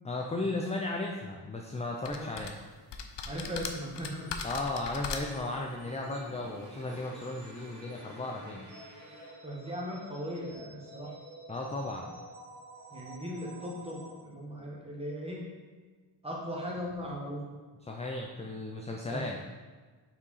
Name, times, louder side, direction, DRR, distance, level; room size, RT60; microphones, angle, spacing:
voice 1, 0.0-2.5 4.4-8.7 11.5-12.1 17.9-19.4, left 2 dB, 15° left, 0 dB, 0.4 m, -35 dB
sound 1, 2.0-2.5 2.9-5.5, left 5 dB, 70° left, 0.7 m, -38 dB
voice 2, 3.2-4.3 9.4-11.1 12.9-15.4 16.2-17.4 19.0-19.3, equal, 15° right, -4 dB, 1.4 m, -38 dB
sound 2, 4.3-14.2, right 1 dB, 80° right, 1.6 m, -51 dB
Motorcycle, 4.4-10.7, equal, 35° right, 1.8 m, -55 dB
5.7 x 4.6 x 4.1 m, 1.4 s
wide cardioid pair, 130°, 44 cm